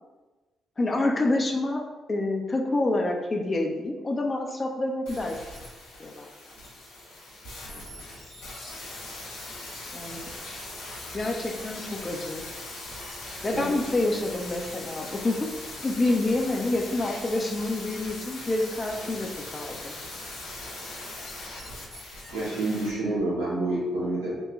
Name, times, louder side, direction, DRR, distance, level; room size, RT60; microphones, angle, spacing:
voice 1, 0.8-5.4 6.0-6.3 9.9-10.3 11.1-12.4 13.4-15.5 15.8-19.9, left 2 dB, 35° left, 2 dB, 0.6 m, -27 dB
sound 1, 5.1-22.9 23.2-23.3, left 2 dB, 85° left, 0.9 m, -40 dB
voice 2, 22.3-24.4, right 2 dB, 90° right, -9 dB, 1.1 m, -28 dB
3.0 x 2.2 x 3.4 m, 1.2 s
hypercardioid pair, 40°, 0 cm